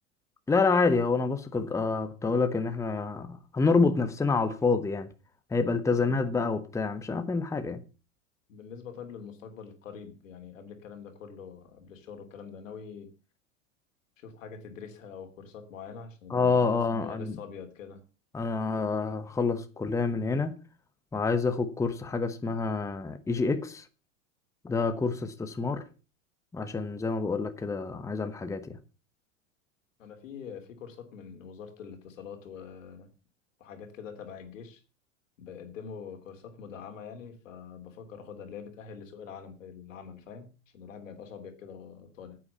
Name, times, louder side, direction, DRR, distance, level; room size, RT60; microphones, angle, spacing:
voice 1, 0.5-5.1 5.5-7.8 16.3-17.3 18.3-20.6 21.1-23.8 24.6-25.8 26.5-28.8, left 4 dB, 10° left, 1.0 m, -27 dB
voice 2, 5.9-6.2 8.5-13.1 14.2-18.0 30.0-33.1 33.6-34.8 35.4-42.4, left 6 dB, 75° left, 3.1 m, -44 dB
9.4 x 8.7 x 6.7 m
hypercardioid pair, 110°, 39 cm